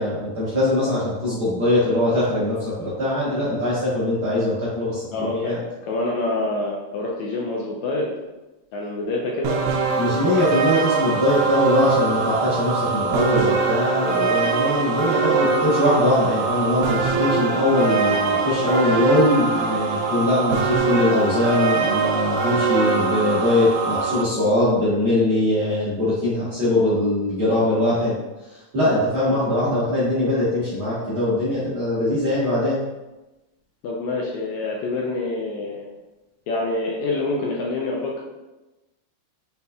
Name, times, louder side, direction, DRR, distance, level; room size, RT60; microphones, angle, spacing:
voice 1, 0.0-5.6 10.0-28.1 28.5-32.8, left 1 dB, 55° right, -10 dB, 1.6 m, -21 dB
voice 2, 5.1-5.6 5.9-8.1 8.7-9.6 29.3-29.4 33.8-35.9 36.5-38.2, left 2 dB, 75° left, -2 dB, 1.8 m, -26 dB
sound 1, 9.4-24.2, right 4 dB, 80° right, 2.1 m, -23 dB
5.3 x 4.2 x 2.3 m, 1.0 s
omnidirectional pair, 3.7 m